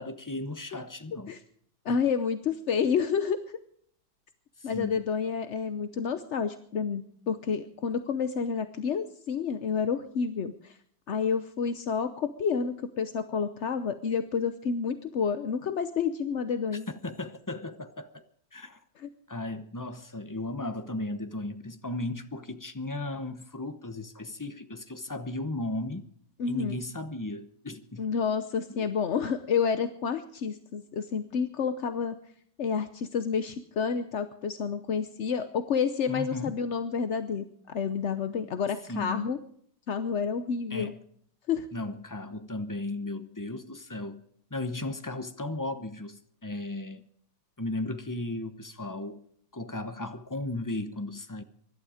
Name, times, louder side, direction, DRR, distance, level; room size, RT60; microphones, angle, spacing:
voice 1, 0.0-1.3 1.9-2.0 4.6-5.0 16.9-18.2 18.5-18.8 19.3-26.1 26.5-28.1 28.7-28.9 36.1-36.6 38.9-39.3 40.7-41.0 41.7-44.2 44.5-47.1 47.6-49.2 49.5-51.4, left 2 dB, 20° left, 0.5 m, -36 dB
voice 2, 1.8-3.4 4.6-10.8 11.1-16.9 26.4-26.8 28.0-32.2 32.6-39.4 39.9-40.9 41.5-41.7, left 6 dB, 50° left, 0.8 m, -29 dB
24.0 x 12.0 x 5.0 m
omnidirectional pair, 2.1 m